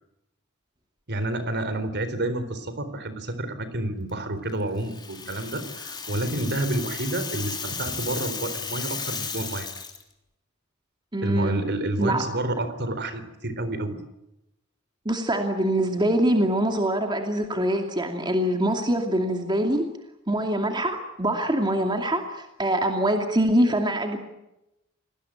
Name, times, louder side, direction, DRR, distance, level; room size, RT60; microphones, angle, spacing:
voice 1, 1.1-9.7 11.2-14.0, right 1 dB, 55° right, 12 dB, 4.0 m, -29 dB
Rattle (instrument), 4.8-10.0, left 5 dB, 20° left, 3.6 m, -34 dB
voice 2, 11.1-11.6 12.0-12.3 15.0-19.9 20.3-24.2, right 1 dB, 20° right, 4 dB, 2.5 m, -24 dB
28.5 x 20.0 x 8.8 m, 0.91 s
head